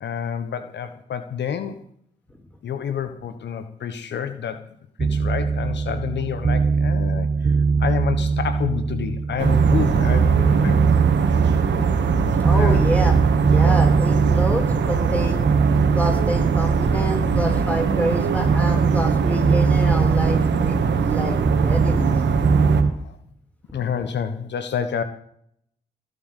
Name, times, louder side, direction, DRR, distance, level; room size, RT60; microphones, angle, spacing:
voice 1, 0.0-1.8 2.6-4.6 5.0-10.9 12.5-12.8 20.9-21.0 23.0-23.2 23.7-25.0, left 8 dB, 75° left, 10 dB, 1.3 m, -29 dB
sound 1, 5.0-22.9, right 4 dB, 35° right, 0.7 m, -22 dB
sound 2, 9.4-22.8, right 6 dB, 80° right, 2.3 m, -21 dB
voice 2, 12.4-13.2 13.5-15.4 15.9-22.1 23.7-23.8, equal, 5° left, 2 dB, 6.1 m, -28 dB
18.5 x 7.9 x 8.1 m, 0.67 s
supercardioid pair, 55°, 18 cm